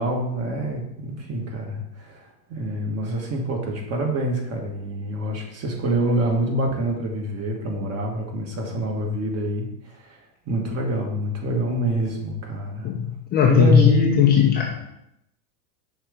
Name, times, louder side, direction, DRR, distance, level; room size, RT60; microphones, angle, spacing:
voice 1, 0.0-2.2 2.5-10.2 10.5-12.9 13.4-14.4 14.7-14.8, right 1 dB, 30° right, 1 dB, 1.4 m, -26 dB
voice 2, 13.3-14.8, left 8 dB, 20° left, 0 dB, 0.4 m, -17 dB
5.7 x 3.5 x 5.1 m, 0.82 s
supercardioid pair, 125°, 48 cm